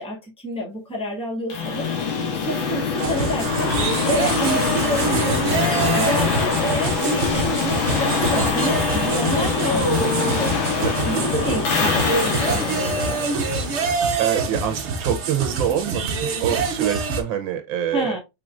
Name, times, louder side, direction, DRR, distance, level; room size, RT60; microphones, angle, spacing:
voice 1, 0.0-13.2 17.9-18.2, equal, 5° left, 1.4 m, -29 dB
sound 1, 1.5-14.4, left 5 dB, 75° left, 1.9 m, -24 dB
sound 2, 3.0-17.2, right 4 dB, 60° right, 0.7 m, -25 dB
voice 2, 14.2-18.2, right 10 dB, 80° right, 1.3 m, -25 dB
6.1 x 3.6 x 2.4 m
omnidirectional pair, 2.2 m